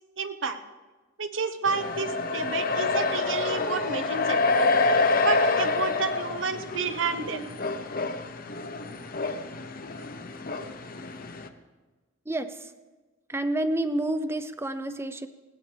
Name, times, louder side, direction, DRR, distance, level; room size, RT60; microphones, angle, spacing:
voice 1, 0.2-0.6 1.2-4.7 5.2-7.5, right 4 dB, 70° right, 8 dB, 1.1 m, -30 dB
sound 1, 1.6-11.5, left 3 dB, 45° left, 0.9 m, -27 dB
voice 2, 12.3-12.7 13.3-15.3, right 1 dB, 15° right, 11 dB, 0.7 m, -29 dB
20.0 x 17.0 x 3.4 m, 1.2 s
head